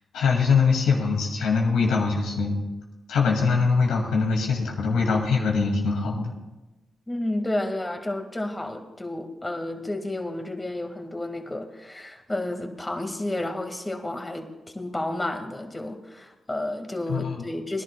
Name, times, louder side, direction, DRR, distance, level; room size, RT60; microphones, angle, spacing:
voice 1, 0.1-2.6 3.1-6.3 17.1-17.4, left 4 dB, 85° left, -1 dB, 2.3 m, -22 dB
voice 2, 7.1-17.8, left 1 dB, 20° left, 5 dB, 1.9 m, -31 dB
22.0 x 11.0 x 2.3 m, 1.1 s
supercardioid pair, 45°, 0 cm